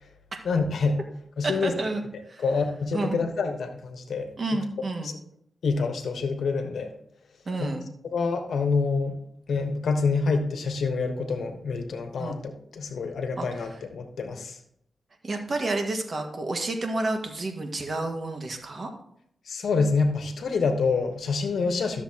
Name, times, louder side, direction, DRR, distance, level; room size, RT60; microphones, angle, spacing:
voice 1, 0.4-1.0 1.4-1.7 2.4-4.3 5.0-5.1 5.6-6.9 7.6-7.7 8.1-9.2 9.5-14.6 19.5-22.0, left 4 dB, 80° left, 6 dB, 1.2 m, -27 dB
voice 2, 1.4-2.4 2.9-3.2 4.4-5.1 7.4-7.9 12.2-12.4 13.4-13.8 15.2-18.9, right 2 dB, 50° right, 4 dB, 1.6 m, -30 dB
13.0 x 7.0 x 2.9 m, 0.70 s
cardioid pair, 70°, 0 cm